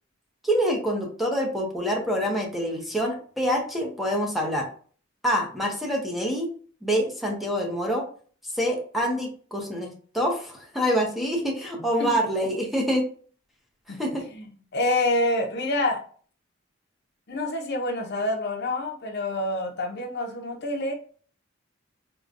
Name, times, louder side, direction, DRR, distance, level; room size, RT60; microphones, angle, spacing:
voice 1, 0.4-4.7 5.2-6.5 6.8-8.1 8.4-13.0 14.0-14.3, equal, ahead, -1 dB, 0.7 m, -26 dB
voice 2, 14.7-16.0 17.3-20.9, left 2 dB, 55° left, 3 dB, 0.7 m, -27 dB
4.9 x 2.2 x 2.4 m, 0.43 s
head